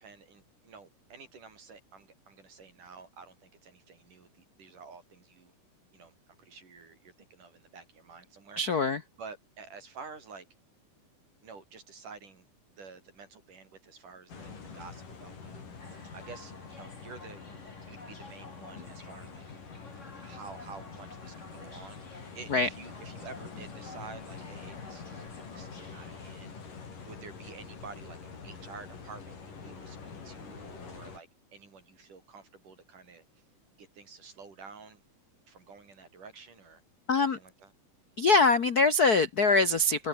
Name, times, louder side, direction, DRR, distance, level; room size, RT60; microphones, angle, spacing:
voice 1, 0.0-5.5 5.9-8.8 9.2-10.5 11.4-12.5 12.8-17.4 17.9-19.4 20.2-26.5 27.0-28.2 28.4-33.2 33.8-35.0 35.5-36.8 37.2-37.7, right 5 dB, 75° right, 6.8 m, -50 dB
voice 2, 8.6-9.0 22.5-22.7 37.1-37.4 38.2-40.1, left 3 dB, 70° left, 0.9 m, -23 dB
sound 1, 14.3-31.2, left 5 dB, 85° left, 6.6 m, -46 dB
sound 2, 15.8-26.3, left 2 dB, 20° left, 4.9 m, -52 dB
open air
omnidirectional pair, 3.7 m